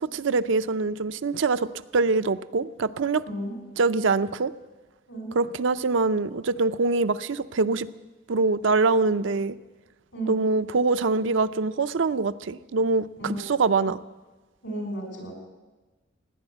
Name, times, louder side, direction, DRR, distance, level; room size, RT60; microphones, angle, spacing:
voice 1, 0.0-3.2 3.8-4.5 5.3-7.9 8.3-9.6 10.3-14.0, right 3 dB, 70° right, 12 dB, 0.5 m, -24 dB
voice 2, 3.3-3.6 5.1-5.4 10.1-10.5 13.2-13.7 14.6-15.4, right 1 dB, 80° left, 2 dB, 5.6 m, -34 dB
17.0 x 10.0 x 7.9 m, 1.2 s
head